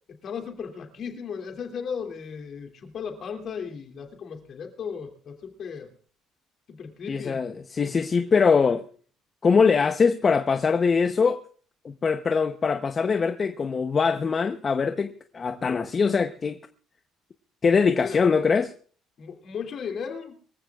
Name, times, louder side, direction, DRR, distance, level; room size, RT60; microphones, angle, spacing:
voice 1, 0.2-5.9 6.7-7.4 18.0-18.3 19.2-20.4, left 6 dB, 50° left, 2.7 m, -36 dB
voice 2, 7.1-8.8 9.4-11.4 11.8-16.6 17.6-18.7, left 5 dB, 30° left, 0.8 m, -22 dB
24.0 x 15.0 x 2.4 m
cardioid pair, 115°, 0 cm